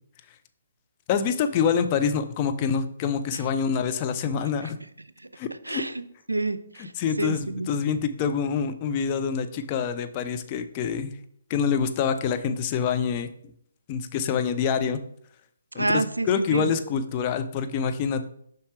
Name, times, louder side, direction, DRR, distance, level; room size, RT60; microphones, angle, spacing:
voice 1, 1.1-4.8 5.4-5.8 7.0-11.1 11.5-13.3 13.9-15.0 15.7-18.3, left 6 dB, 30° left, 8 dB, 0.5 m, -26 dB
voice 2, 5.7-6.9 7.2-7.7 15.8-16.7, right 2 dB, 85° right, 14 dB, 0.4 m, -29 dB
7.1 x 5.5 x 3.3 m, 0.68 s
figure-of-eight pair, 135°, 0 cm